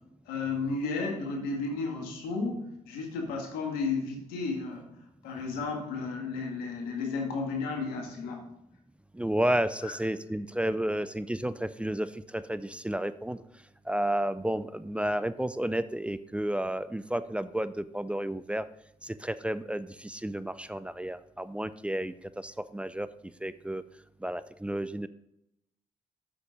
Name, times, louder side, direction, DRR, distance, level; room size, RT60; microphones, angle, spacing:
voice 1, 0.3-4.9 5.2-8.4 9.8-10.0, left 4 dB, 90° left, 2 dB, 1.9 m, -33 dB
voice 2, 9.1-13.4 13.9-18.7 19.0-23.1 23.4-23.8 24.2-25.1, right 1 dB, 10° right, 14 dB, 0.6 m, -31 dB
6.9 x 6.8 x 5.0 m, 0.81 s
supercardioid pair, 55°, 15 cm